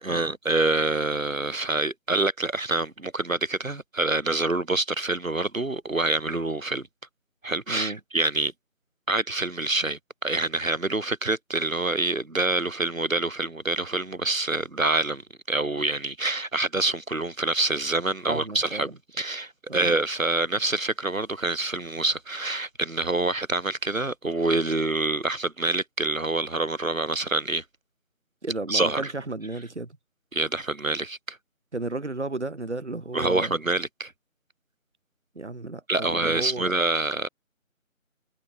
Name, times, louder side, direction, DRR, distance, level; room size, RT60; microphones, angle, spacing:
voice 1, 0.0-6.9 7.4-8.5 9.1-15.2 15.5-18.9 19.2-27.6 28.7-29.1 30.3-31.4 33.1-34.1 35.9-37.3, right 2 dB, 75° right, 3.2 m, -26 dB
voice 2, 7.7-8.0 18.2-18.9 19.7-19.9 28.4-30.0 31.7-33.5 35.4-36.7, right 2 dB, 55° right, 2.6 m, -33 dB
figure-of-eight pair, 175°, 41 cm